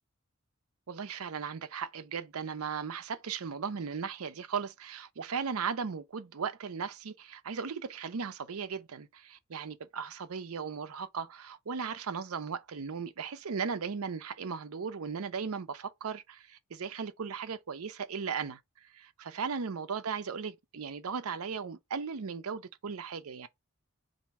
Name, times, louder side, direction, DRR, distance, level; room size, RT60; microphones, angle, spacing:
voice 1, 0.9-23.5, right 6 dB, 90° right, 0.6 m, -37 dB
4.2 x 2.7 x 4.6 m
head